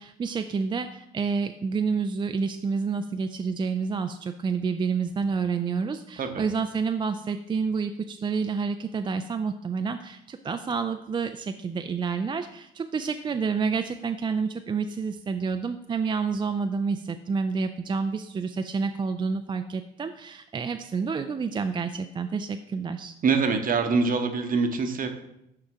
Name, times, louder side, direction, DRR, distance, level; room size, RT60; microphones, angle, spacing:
voice 1, 0.0-23.1, right 5 dB, 25° right, 7 dB, 0.3 m, -29 dB
voice 2, 23.2-25.1, right 4 dB, 45° right, 7 dB, 0.8 m, -24 dB
6.4 x 4.8 x 3.5 m, 0.80 s
hypercardioid pair, 60°, 20 cm